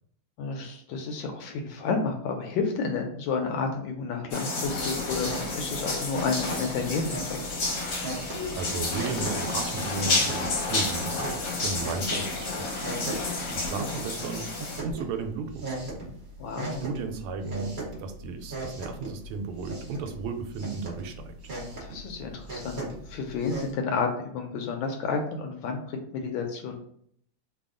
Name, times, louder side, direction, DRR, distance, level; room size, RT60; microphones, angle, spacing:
voice 1, 0.4-7.4 16.4-16.8 21.8-26.8, left 4 dB, 75° left, 4 dB, 1.2 m, -31 dB
sound 1, 4.3-14.8, left 3 dB, 60° left, 1.0 m, -30 dB
sound 2, 4.6-23.7, right 2 dB, 50° right, 0.6 m, -39 dB
voice 2, 8.1-15.9 16.8-21.3, right 4 dB, 90° right, 6 dB, 1.5 m, -35 dB
3.4 x 2.3 x 3.6 m, 0.66 s
omnidirectional pair, 2.3 m